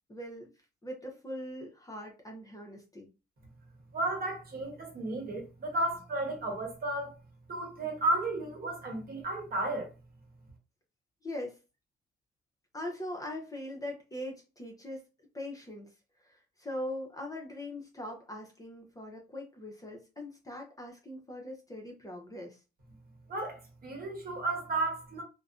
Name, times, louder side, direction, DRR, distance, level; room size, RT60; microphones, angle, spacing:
voice 1, 0.1-0.5 0.8-3.1 11.2-11.6 12.7-15.0 15.3-15.9 16.2-22.6, left 1 dB, 15° left, 0.7 m, -41 dB
voice 2, 3.9-7.1 7.5-9.9 23.3-25.2, right 2 dB, 50° right, 1.0 m, -33 dB
2.5 x 2.1 x 2.4 m
cardioid pair, 90°, 20 cm